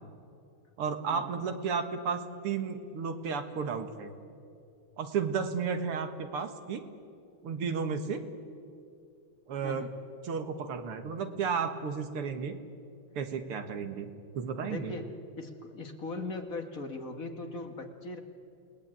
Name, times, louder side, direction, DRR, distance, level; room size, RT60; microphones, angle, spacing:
voice 1, 0.8-4.1 5.0-6.9 7.4-8.2 9.5-9.9 10.2-12.6 13.1-14.1 14.3-15.0, right 6 dB, 85° right, 8 dB, 2.5 m, -33 dB
voice 2, 14.6-15.1 15.4-18.2, left 3 dB, 40° left, 5 dB, 2.0 m, -39 dB
28.5 x 19.5 x 8.9 m, 2.5 s
omnidirectional pair, 2.4 m